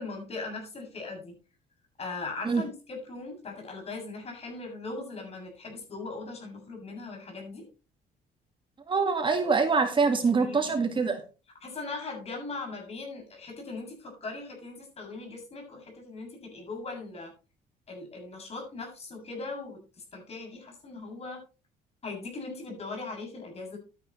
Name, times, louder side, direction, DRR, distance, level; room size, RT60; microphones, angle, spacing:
voice 1, 0.0-1.3 2.0-7.7 10.1-10.7 11.6-17.3 17.9-19.8 20.1-21.4 22.0-23.8, left 3 dB, 35° left, 2 dB, 7.4 m, -39 dB
voice 2, 8.9-11.2, right 4 dB, 30° right, 6 dB, 1.8 m, -24 dB
12.5 x 10.0 x 3.2 m, 0.33 s
cardioid pair, 110°, 17 cm